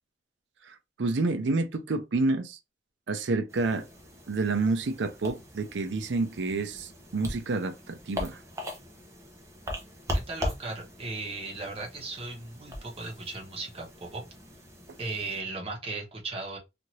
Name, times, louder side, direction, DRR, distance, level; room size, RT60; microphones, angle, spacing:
voice 1, 0.6-2.6 3.1-3.9 4.3-8.4, right 3 dB, 85° right, 0.5 m, -29 dB
sound 1, 3.5-15.4, left 1 dB, 15° right, 0.7 m, -40 dB
voice 2, 10.1-14.2 15.0-16.6, right 3 dB, 35° right, 1.0 m, -37 dB
2.7 x 2.5 x 3.0 m
head